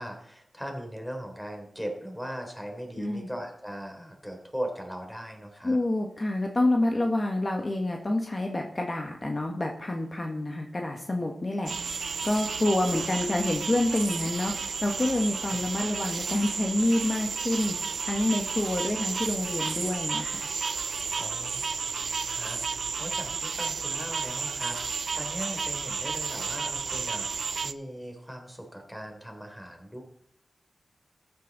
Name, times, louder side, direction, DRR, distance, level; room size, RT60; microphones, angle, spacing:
voice 1, 0.0-5.8 13.0-13.1 21.2-21.8 22.3-30.0, equal, ahead, 3 dB, 3.3 m, -39 dB
voice 2, 3.0-3.3 5.6-11.7 12.2-17.7 18.0-20.5, left 1 dB, 35° left, 2 dB, 1.5 m, -28 dB
sound 1, 11.7-27.7, right 5 dB, 80° right, 0.5 m, -32 dB
14.0 x 9.0 x 4.0 m, 0.74 s
wide cardioid pair, 70°, 0 cm